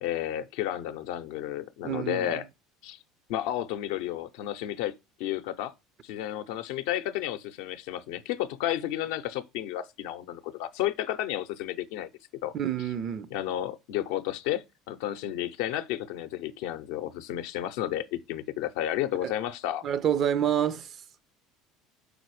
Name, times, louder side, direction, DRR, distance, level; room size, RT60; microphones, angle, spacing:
voice 1, 0.0-2.5 2.8-3.0 3.3-5.7 6.0-12.1 12.4-12.5 13.3-19.8, left 12 dB, 70° left, 0.5 m, -32 dB
voice 2, 1.8-2.3 12.5-13.3 19.8-20.9, right 9 dB, 50° right, 0.5 m, -27 dB
5.0 x 4.1 x 4.7 m
hypercardioid pair, 75°, 0 cm